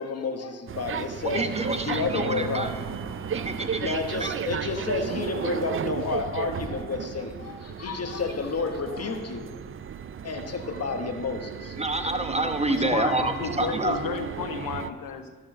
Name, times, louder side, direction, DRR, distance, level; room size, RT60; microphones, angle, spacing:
voice 1, 0.0-2.7 3.8-9.5 10.2-11.8, left 4 dB, 45° left, 5 dB, 1.3 m, -31 dB
sound 1, 0.7-14.9, right 8 dB, 40° right, 0.4 m, -35 dB
voice 2, 1.2-2.7 3.3-4.3 11.8-14.0, right 2 dB, 20° right, 7 dB, 1.1 m, -28 dB
sound 2, 1.3-11.9, right 5 dB, 75° right, 1.1 m, -41 dB
voice 3, 12.7-15.3, left 6 dB, 80° left, 9 dB, 0.8 m, -32 dB
13.0 x 4.6 x 6.2 m, 1.4 s
supercardioid pair, 45°, 33 cm